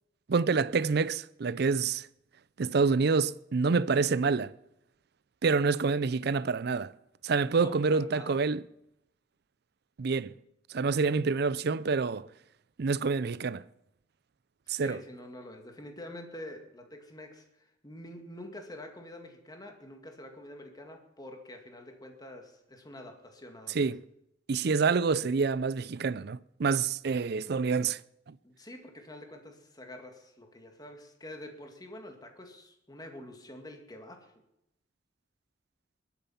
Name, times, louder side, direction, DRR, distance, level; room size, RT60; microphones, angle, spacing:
voice 1, 0.3-2.1 2.6-4.5 5.4-6.9 7.2-8.6 10.0-10.3 10.7-12.3 12.8-13.6 14.7-15.0 23.7-24.0 24.5-28.0 28.3-28.4, right 4 dB, 60° right, 0.5 m, -27 dB
voice 2, 7.6-8.4 14.7-23.9 28.4-34.3, left 1 dB, 20° left, 2.1 m, -47 dB
22.0 x 9.0 x 5.7 m
head